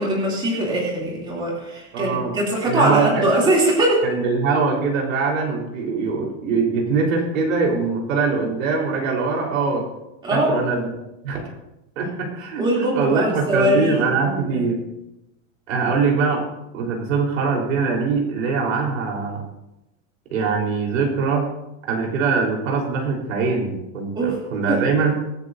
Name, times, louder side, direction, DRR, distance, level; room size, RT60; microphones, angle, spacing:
voice 1, 0.0-4.0 10.2-10.6 12.6-14.6 24.1-24.4 24.7-24.8, right 1 dB, 10° right, -3 dB, 2.8 m, -21 dB
voice 2, 1.9-2.3 2.7-3.3 4.0-9.8 10.3-10.9 11.2-11.5 12.0-14.8 15.7-16.4 16.7-19.4 20.3-21.5 21.9-25.2, right 4 dB, 80° right, 0 dB, 4.1 m, -22 dB
24.0 x 9.8 x 2.7 m, 0.91 s
supercardioid pair, 175°, 39 cm